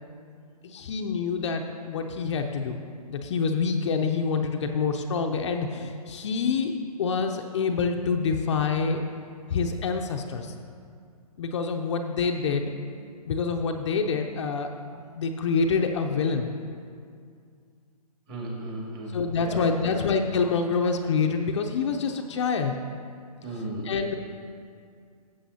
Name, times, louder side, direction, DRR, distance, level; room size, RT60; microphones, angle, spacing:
voice 1, 0.6-6.7 7.0-9.0 9.5-10.5 11.4-12.7 13.2-16.5 19.1-22.8 23.8-24.2, left 5 dB, 45° left, 4 dB, 0.6 m, -27 dB
voice 2, 18.3-20.0 23.4-23.9, right 1 dB, 25° right, -3 dB, 2.1 m, -35 dB
14.0 x 7.6 x 2.8 m, 2.3 s
hypercardioid pair, 145°, 20 cm